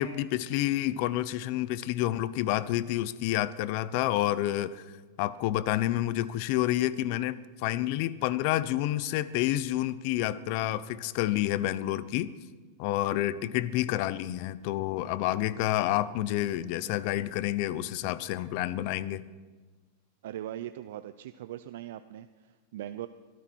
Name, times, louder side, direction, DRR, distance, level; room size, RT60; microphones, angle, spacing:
voice 1, 0.0-4.8 5.2-12.3 12.8-19.2, left 14 dB, 50° left, 17 dB, 0.7 m, -29 dB
voice 2, 20.2-23.1, right 12 dB, 70° right, 11 dB, 0.6 m, -40 dB
23.0 x 13.0 x 4.6 m, 1.3 s
supercardioid pair, 145°, 0 cm